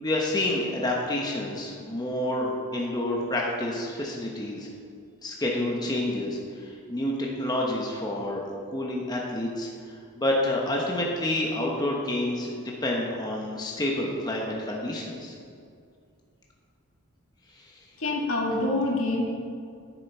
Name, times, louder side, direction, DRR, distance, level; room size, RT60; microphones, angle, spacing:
voice 1, 0.0-4.7 5.2-8.4 8.7-15.4 17.5-17.8, left 1 dB, 20° left, -2 dB, 0.9 m, -29 dB
voice 2, 18.0-19.2, left 2 dB, 65° left, -1 dB, 1.7 m, -26 dB
10.0 x 7.5 x 4.4 m, 2.3 s
head